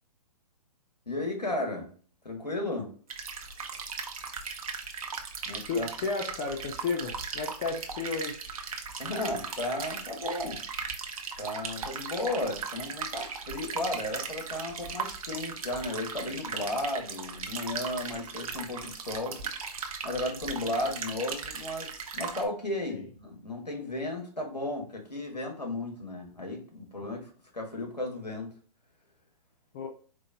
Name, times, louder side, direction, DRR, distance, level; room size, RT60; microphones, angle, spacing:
voice 1, 1.1-1.9 2.2-2.9 5.5-5.9 9.0-10.6 11.4-19.4 20.0-28.5, left 1 dB, 85° left, 2 dB, 1.4 m, -34 dB
sound 1, 3.1-22.5, right 5 dB, 60° right, 0.7 m, -38 dB
voice 2, 5.7-8.4 22.9-23.1 29.7-29.9, left 4 dB, 25° left, 2 dB, 0.4 m, -33 dB
4.4 x 2.6 x 2.5 m, 0.43 s
figure-of-eight pair, 120°, 21 cm